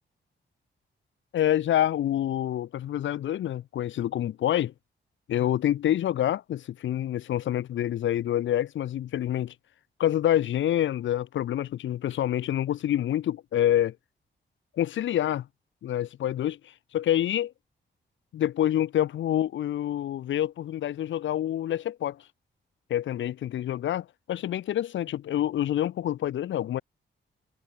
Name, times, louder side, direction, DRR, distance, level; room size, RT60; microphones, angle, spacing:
voice 1, 1.3-4.7 5.3-9.5 10.0-14.0 14.8-15.5 15.8-16.6 16.9-17.5 18.3-22.2 22.9-26.8, left 11 dB, 75° left, 0.5 m, -27 dB
cardioid pair, 100°, 20 cm